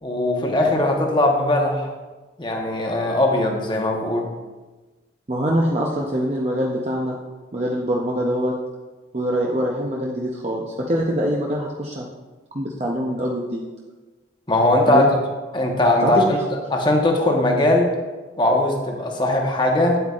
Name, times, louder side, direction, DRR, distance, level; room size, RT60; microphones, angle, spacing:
voice 1, 0.0-1.9 2.4-4.3 14.5-15.1 15.5-16.4 16.7-17.9 18.4-20.0, left 1 dB, 25° left, 1 dB, 1.0 m, -19 dB
voice 2, 5.3-7.2 7.5-8.5 9.1-12.1 12.5-13.6 14.9-15.1 16.0-16.3, equal, 35° right, -3 dB, 0.7 m, -24 dB
9.1 x 7.9 x 2.4 m, 1.2 s
head